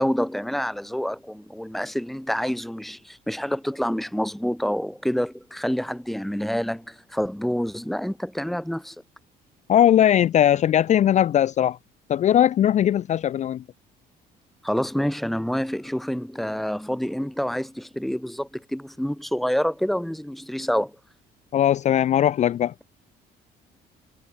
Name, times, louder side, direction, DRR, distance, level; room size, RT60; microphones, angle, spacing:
voice 1, 0.0-9.0 14.6-20.9, equal, ahead, 1.0 m, -27 dB
voice 2, 9.7-11.8 12.1-13.6 21.5-22.7, left 10 dB, 45° left, 0.5 m, -19 dB
cardioid pair, 110°, 17 cm